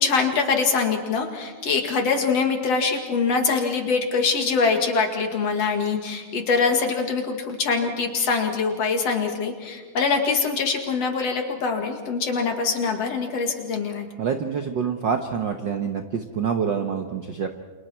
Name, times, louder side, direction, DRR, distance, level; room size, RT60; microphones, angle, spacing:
voice 1, 0.0-14.1, left 5 dB, 55° left, 4 dB, 3.0 m, -23 dB
voice 2, 14.2-17.5, right 6 dB, 85° right, 5 dB, 1.0 m, -26 dB
29.0 x 27.5 x 4.5 m, 1.5 s
omnidirectional pair, 3.7 m